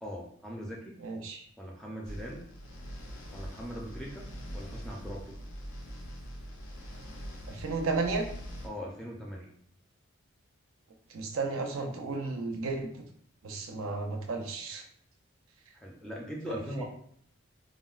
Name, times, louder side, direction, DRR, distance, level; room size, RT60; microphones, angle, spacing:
voice 1, 0.0-0.9 1.6-2.4 3.3-4.2 4.5-5.3 8.6-9.5 15.7-16.8, equal, 5° left, -3 dB, 0.3 m, -40 dB
voice 2, 1.0-1.5 7.5-8.3 11.1-12.9 13.4-14.8 16.5-16.8, right 3 dB, 90° right, 3 dB, 0.5 m, -33 dB
sound 1, 2.0-8.7, equal, 85° left, 0.5 m, -43 dB
3.6 x 2.0 x 2.3 m, 0.64 s
head